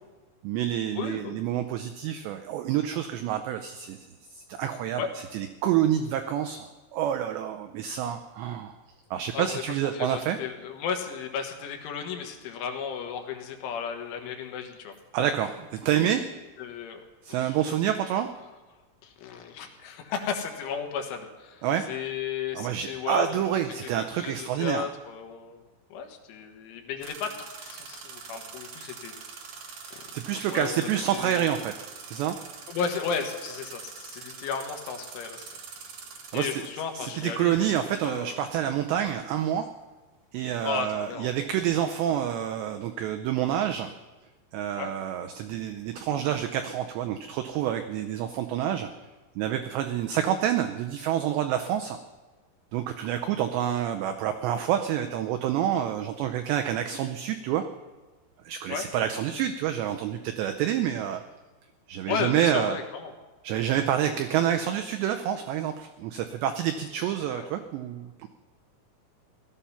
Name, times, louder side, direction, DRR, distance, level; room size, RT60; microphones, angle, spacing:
voice 1, 0.4-5.0 5.3-8.8 9.1-10.4 15.1-16.2 17.2-18.3 21.6-21.9 22.5-24.8 30.1-32.4 36.3-36.5 36.9-39.7 40.3-43.9 44.5-48.9 49.4-52.0 52.7-57.6 58.5-61.2 61.9-62.8 63.4-68.3, right 10 dB, 90° right, 6 dB, 2.4 m, -28 dB
voice 2, 1.0-1.4 5.0-5.1 9.3-9.6 9.9-14.9 16.6-17.0 17.4-17.6 19.0-23.9 24.2-25.6 25.9-30.1 30.5-31.5 32.7-35.5 36.3-37.7 38.0-38.4 40.6-41.3 44.8-44.9 58.7-58.9 62.1-63.1 64.0-64.4 67.0-67.5, left 6 dB, 75° left, 4 dB, 3.7 m, -34 dB
sound 1, 27.0-38.5, right 6 dB, 70° right, 1.7 m, -44 dB
17.5 x 13.0 x 5.7 m, 1.2 s
omnidirectional pair, 5.8 m